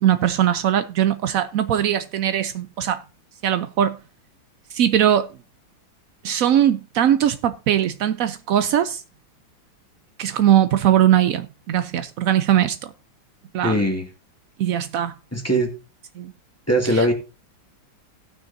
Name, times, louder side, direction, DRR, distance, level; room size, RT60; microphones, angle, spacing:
voice 1, 0.0-3.0 3.4-4.0 4.7-5.3 6.2-9.0 10.2-12.9 13.5-13.8 14.6-15.1 16.2-16.3 16.9-17.1, right 10 dB, 85° right, 0.7 m, -20 dB
voice 2, 13.6-14.1 15.3-15.7 16.7-17.1, right 1 dB, 10° left, 1.7 m, -20 dB
18.0 x 6.3 x 2.6 m
omnidirectional pair, 2.1 m